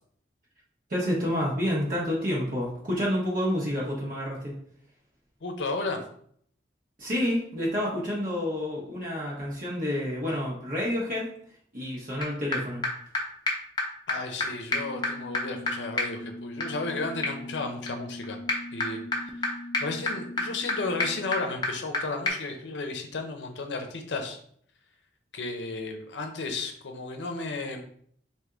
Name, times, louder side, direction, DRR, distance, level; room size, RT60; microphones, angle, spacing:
voice 1, 0.9-4.5 7.0-11.3 11.7-12.8, equal, 45° right, -5 dB, 1.1 m, -29 dB
voice 2, 5.4-6.0 14.1-18.4 18.7-19.0 19.4-19.5 19.8-24.4 25.3-27.8, left 3 dB, 80° left, 5 dB, 0.6 m, -33 dB
sound 1, 12.2-12.3 12.5-12.6 12.8-12.9 13.1-13.2 13.5-13.6 13.8-13.9 14.1-14.2 14.4-14.5 14.7-22.0 22.3-22.4, left 2 dB, 25° left, 0.6 m, -31 dB
3.4 x 2.6 x 3.8 m, 0.63 s
head